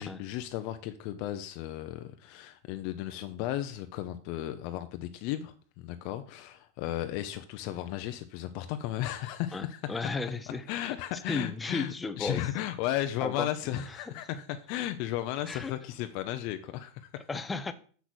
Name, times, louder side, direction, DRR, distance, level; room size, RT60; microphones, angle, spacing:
voice 1, 0.0-9.8 10.7-17.1, left 13 dB, 50° left, 9 dB, 0.7 m, -35 dB
voice 2, 9.5-10.9 11.3-12.4 13.2-13.5 13.7-14.0 15.5-15.7 17.3-17.7, left 3 dB, 10° left, 12 dB, 0.7 m, -34 dB
6.9 x 6.2 x 6.2 m, 0.43 s
supercardioid pair, 155°, 0 cm